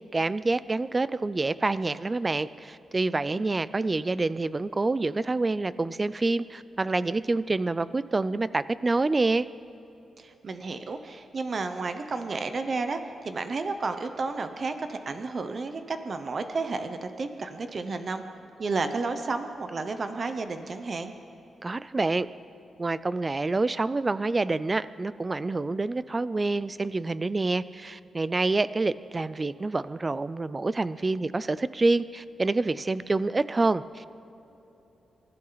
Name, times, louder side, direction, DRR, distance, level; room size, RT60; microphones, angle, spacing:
voice 1, 0.1-9.5 21.6-22.3 22.8-34.2, right 3 dB, 20° right, 16 dB, 0.3 m, -27 dB
voice 2, 10.2-18.2 18.6-21.1, right 3 dB, 35° right, 8 dB, 0.8 m, -32 dB
25.5 x 14.0 x 4.0 m, 3.0 s
wide cardioid pair, 165°, 0 cm